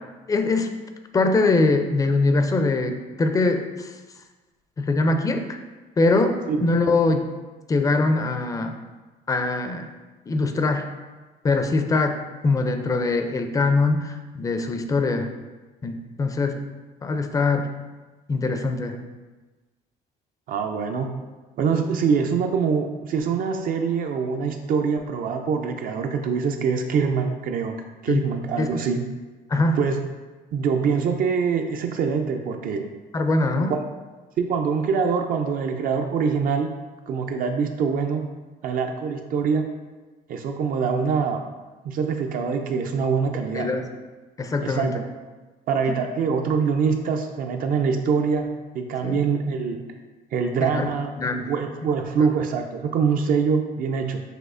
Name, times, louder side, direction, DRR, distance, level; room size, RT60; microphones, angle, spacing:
voice 1, 0.3-0.7 1.1-3.9 4.8-5.5 6.0-7.3 7.7-8.8 9.3-9.9 10.3-10.9 11.4-12.2 12.4-15.3 15.8-16.6 17.0-17.7 18.3-19.0 28.1-28.3 28.6-28.8 29.5-29.8 33.1-33.8 43.5-43.9 44.4-44.9 49.0-49.2 50.6-50.9 51.2-51.5, left 3 dB, 20° left, 6 dB, 0.4 m, -22 dB
voice 2, 20.5-21.1 21.6-27.8 28.0-29.0 29.8-30.0 30.5-32.8 33.7-33.8 34.4-36.7 37.1-38.2 38.6-39.7 40.3-41.4 41.8-43.7 44.6-45.0 45.7-49.8 50.3-51.1 51.5-54.2, right 5 dB, 55° right, 4 dB, 0.4 m, -24 dB
6.1 x 2.7 x 2.5 m, 1.2 s
cardioid pair, 110°, 17 cm